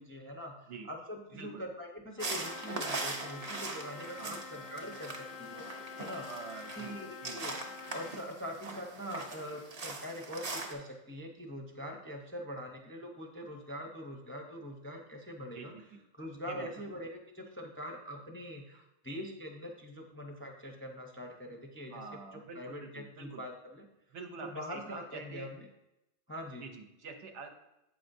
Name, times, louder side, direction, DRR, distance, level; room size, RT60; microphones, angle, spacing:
voice 1, 0.0-6.3 6.8-7.5 7.9-15.7 16.2-22.0 22.3-23.8 24.4-25.7 26.3-26.7, equal, 15° left, 1 dB, 0.4 m, -43 dB
Trumpet, 2.2-8.2, left 5 dB, 85° left, 1.1 m, -47 dB
sound 1, 2.2-10.7, right 2 dB, 40° right, 0.7 m, -41 dB
voice 2, 6.2-6.9 7.2-7.4 15.5-16.0 16.5-16.9 21.9-23.4 24.1-25.5 26.6-27.6, right 4 dB, 70° right, 5 dB, 1.0 m, -46 dB
7.9 x 5.5 x 2.6 m, 0.91 s
omnidirectional pair, 1.3 m